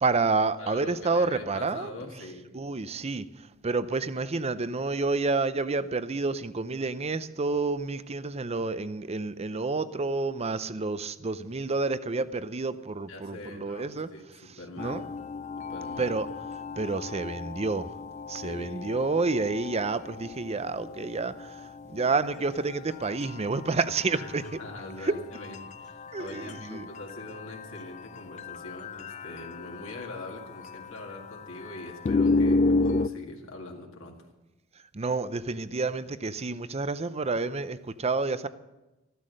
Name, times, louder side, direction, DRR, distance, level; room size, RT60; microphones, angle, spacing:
voice 1, 0.0-1.9 2.5-14.1 14.8-15.0 16.0-16.3 16.8-17.9 18.3-24.6 25.0-25.2 26.1-26.9 34.9-38.5, right 3 dB, 30° right, 14 dB, 0.6 m, -29 dB
voice 2, 0.6-2.5 13.1-15.0 15.6-16.2 18.4-18.9 24.1-24.3 24.6-34.2, left 2 dB, 70° left, 0 dB, 2.0 m, -43 dB
sound 1, 14.8-33.1, left 3 dB, 35° left, 0.4 m, -33 dB
14.0 x 12.5 x 6.5 m, 1.0 s
head